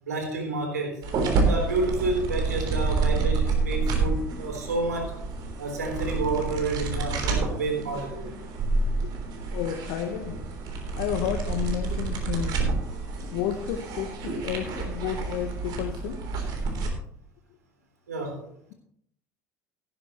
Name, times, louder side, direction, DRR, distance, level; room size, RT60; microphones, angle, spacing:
voice 1, 0.0-1.0 1.4-5.2 5.6-8.3 18.1-18.4, right 3 dB, 85° right, 2 dB, 3.7 m, -29 dB
sound 1, 1.0-16.9, right 3 dB, 55° right, 3.4 m, -29 dB
voice 2, 8.8-10.5 11.0-16.2, left 10 dB, 65° left, 6 dB, 1.1 m, -32 dB
17.5 x 10.0 x 3.1 m, 0.65 s
hypercardioid pair, 65°, 9 cm